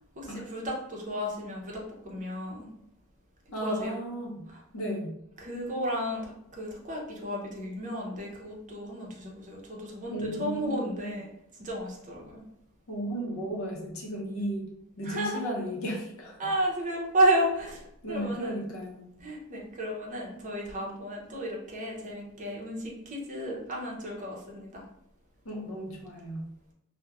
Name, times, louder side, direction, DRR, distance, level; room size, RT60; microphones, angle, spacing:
voice 1, 0.2-2.7 3.6-4.0 4.5-4.6 5.4-11.3 11.6-12.4 15.0-15.4 16.4-18.6 19.2-24.8, right 1 dB, 35° right, -2 dB, 0.6 m, -32 dB
voice 2, 3.5-4.4 4.7-5.1 10.1-11.1 12.9-16.4 18.0-19.1 25.4-26.4, equal, 65° left, -1 dB, 0.6 m, -35 dB
2.8 x 2.1 x 2.3 m, 0.77 s
head